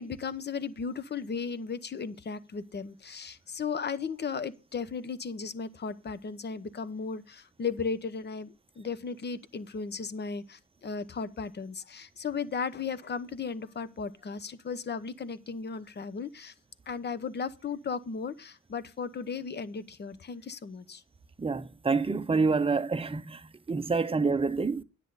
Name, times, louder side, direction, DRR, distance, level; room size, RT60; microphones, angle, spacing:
voice 1, 0.0-16.5 16.9-21.0, left 5 dB, 35° left, 0.9 m, -36 dB
voice 2, 21.4-23.4 23.7-24.8, right 4 dB, 20° right, 0.8 m, -27 dB
10.0 x 8.1 x 4.0 m
cardioid pair, 90°, 30 cm